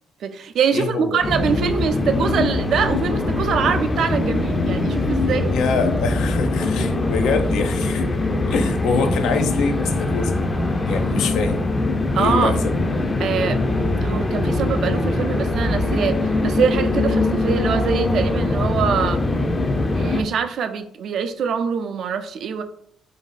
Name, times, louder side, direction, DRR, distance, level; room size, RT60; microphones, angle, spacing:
voice 1, 0.2-5.5 12.2-12.5 13.2-13.6 14.0-19.2 19.9-22.6, right 6 dB, 70° right, 8 dB, 0.4 m, -24 dB
voice 2, 0.7-1.2 5.5-8.1 8.5-10.4 10.9-11.6 12.2-12.7, left 4 dB, 85° left, 6 dB, 0.5 m, -24 dB
sound 1, 1.2-20.2, left 2 dB, 25° left, 0.5 m, -22 dB
3.1 x 2.6 x 3.9 m, 0.67 s
cardioid pair, 90°, 0 cm